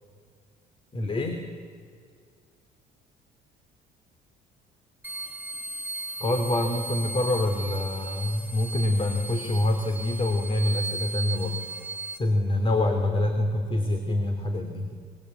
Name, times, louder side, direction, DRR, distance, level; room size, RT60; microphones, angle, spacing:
voice 1, 0.9-1.4 6.2-11.6 12.1-14.9, left 1 dB, 30° left, 6 dB, 2.8 m, -26 dB
sound 1, 5.0-12.2, right 2 dB, 10° right, 1.5 m, -36 dB
25.0 x 23.5 x 8.3 m, 2.1 s
cardioid pair, 110°, 17 cm